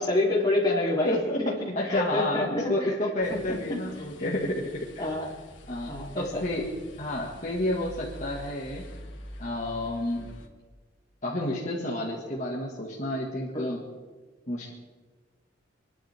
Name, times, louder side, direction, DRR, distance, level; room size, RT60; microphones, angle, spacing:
voice 1, 0.0-4.0 5.0-5.3 5.9-6.4 13.5-13.7, left 2 dB, 20° left, -4 dB, 3.4 m, -28 dB
voice 2, 1.0-1.4 1.8-5.1 5.7-6.7 7.0-8.8 9.4-10.3 11.2-13.8 14.5-14.7, left 1 dB, 40° left, -4 dB, 2.0 m, -30 dB
sound 1, 3.2-10.5, equal, 85° left, 2.3 m, -46 dB
27.5 x 11.0 x 3.6 m, 1.4 s
head